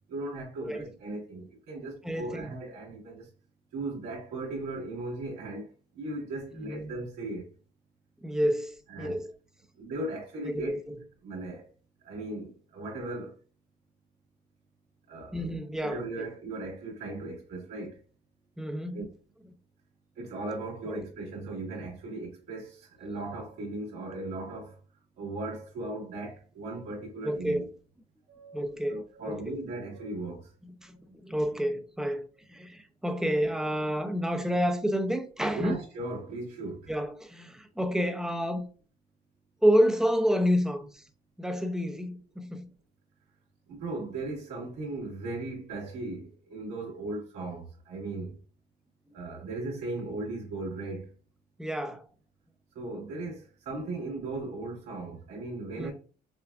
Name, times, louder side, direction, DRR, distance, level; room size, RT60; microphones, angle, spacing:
voice 1, 0.1-3.3 3.7-5.7 5.9-7.5 8.9-9.2 9.8-10.8 11.2-11.7 12.0-13.4 15.1-15.4 15.8-18.0 18.9-19.1 20.2-24.8 25.2-27.7 28.3-30.5 35.5-36.9 43.7-48.4 49.1-51.1 52.7-55.9, right 2 dB, 85° right, 2.1 m, -37 dB
voice 2, 2.0-2.5 6.5-6.9 8.2-9.3 10.4-11.0 15.3-16.3 18.6-19.1 20.9-21.0 27.2-27.7 28.5-29.6 30.6-35.8 36.9-38.6 39.6-41.0 41.4-42.7 51.6-52.1 55.8-55.9, equal, 5° right, 0.6 m, -29 dB
5.8 x 2.3 x 2.5 m
cardioid pair, 110°, 17 cm